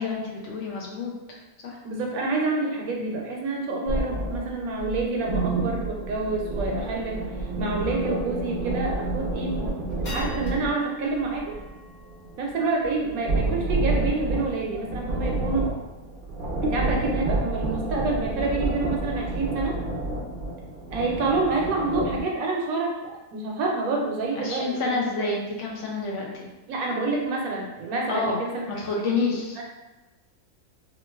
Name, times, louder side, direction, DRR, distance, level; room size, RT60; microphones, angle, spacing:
voice 1, 0.0-1.4 1.6-1.8 24.4-26.5 28.1-29.6, left 4 dB, 65° left, -2 dB, 0.7 m, -29 dB
voice 2, 1.8-7.2 7.6-9.6 10.1-11.5 12.4-15.7 16.6-19.8 20.9-25.1 26.7-28.6 29.0-29.6, right 3 dB, 70° right, -1 dB, 1.0 m, -28 dB
sound 1, 3.9-10.7 11.1-22.2, right 2 dB, 55° right, 0.5 m, -29 dB
sound 2, 7.4-7.6 8.1-8.2 8.8-9.1 9.6-16.2, left 2 dB, 45° left, 1.2 m, -46 dB
3.7 x 2.3 x 2.3 m, 1.1 s
omnidirectional pair, 1.7 m